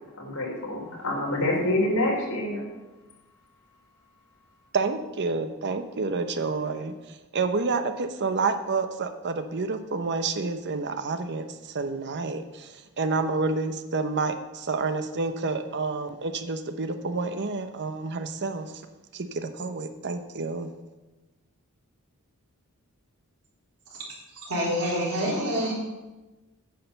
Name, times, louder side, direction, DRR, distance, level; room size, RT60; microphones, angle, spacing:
voice 1, 0.2-2.7, left 1 dB, 75° left, -2 dB, 3.8 m, -27 dB
voice 2, 4.7-6.9 7.3-18.7 19.1-20.7, right 4 dB, 50° right, 9 dB, 0.8 m, -29 dB
voice 3, 24.5-25.7, equal, 85° right, -4 dB, 3.7 m, -26 dB
9.4 x 6.6 x 6.8 m, 1.1 s
head